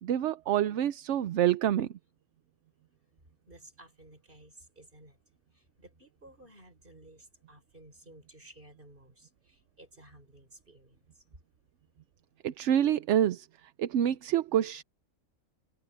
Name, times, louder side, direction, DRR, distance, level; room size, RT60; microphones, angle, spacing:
voice 1, 0.0-1.9 12.4-13.5 13.8-14.8, right 10 dB, 65° right, 0.9 m, -27 dB
voice 2, 3.5-5.2 5.5-11.3, right 1 dB, 40° right, 6.5 m, -55 dB
omnidirectional pair, 1.4 m